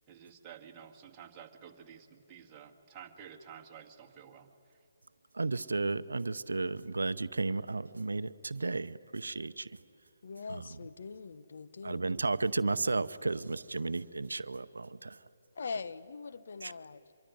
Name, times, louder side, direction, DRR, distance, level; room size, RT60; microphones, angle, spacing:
voice 1, 0.1-4.5, right 8 dB, 20° right, 1 dB, 2.0 m, -51 dB
voice 2, 5.3-9.7 10.5-10.6 11.8-15.2 16.6-16.7, right 3 dB, 75° right, 14 dB, 0.7 m, -33 dB
voice 3, 10.2-12.0 15.5-17.0, left 5 dB, 60° left, 11 dB, 1.1 m, -42 dB
25.0 x 23.5 x 9.6 m, 2.6 s
figure-of-eight pair, 140°, 0 cm